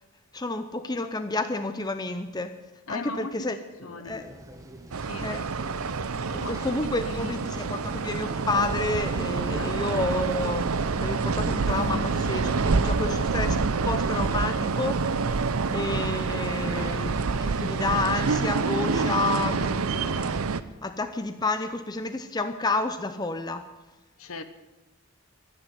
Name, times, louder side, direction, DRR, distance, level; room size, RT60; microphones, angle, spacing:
voice 1, 0.3-2.5 2.9-3.6 3.9-4.3 5.2-5.4 6.5-13.6 13.8-15.2 15.7-20.4 20.8-23.7, left 3 dB, 20° left, 0.6 m, -30 dB
voice 2, 2.9-4.3 5.0-5.3 6.0-6.7 7.0-7.5 9.5-9.8 24.2-24.4, left 3 dB, 65° left, 1.1 m, -39 dB
sound 1, 4.1-19.3, right 1 dB, 15° right, 1.1 m, -47 dB
sound 2, 4.9-20.6, right 4 dB, 70° right, 0.7 m, -27 dB
Bass guitar, 11.6-17.9, right 2 dB, 85° left, 1.4 m, -42 dB
12.0 x 10.0 x 9.6 m
head